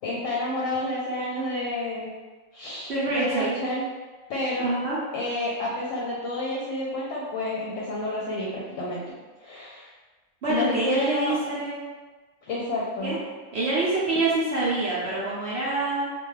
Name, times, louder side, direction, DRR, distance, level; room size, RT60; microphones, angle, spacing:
voice 1, 0.0-2.1 2.5-3.9 4.3-4.7 5.1-9.0 9.4-9.9 10.5-11.3 12.5-13.2, left 1 dB, 65° left, -6 dB, 0.9 m, -30 dB
voice 2, 2.9-3.6 4.6-5.0 10.4-11.8 13.0-13.2 13.5-16.1, right 2 dB, 60° right, -7 dB, 0.7 m, -26 dB
2.4 x 2.2 x 3.1 m, 1.3 s
omnidirectional pair, 1.5 m